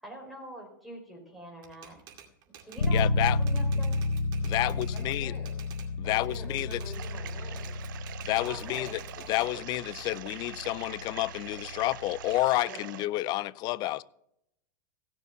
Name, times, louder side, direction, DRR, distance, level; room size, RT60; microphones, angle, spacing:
voice 1, 0.0-2.0 2.6-4.0 8.5-9.3, right 1 dB, ahead, 4.7 m, -45 dB
Typewriter, 1.6-5.9 6.2-9.5 10.0-11.6, right 8 dB, 40° right, 2.3 m, -51 dB
Bass guitar, 2.8-12.5, left 2 dB, 85° left, 1.2 m, -32 dB
voice 2, 2.9-3.4 4.4-5.3 6.0-6.8 8.2-9.0 9.3-14.0, left 17 dB, 40° left, 0.4 m, -30 dB
voice 3, 4.6-5.6 6.0-7.8 8.4-9.1 12.6-13.1, left 2 dB, 20° left, 5.1 m, -48 dB
sound 1, 6.9-13.1, right 13 dB, 70° right, 0.7 m, -45 dB
16.0 x 6.9 x 5.8 m
hypercardioid pair, 120°, 11 cm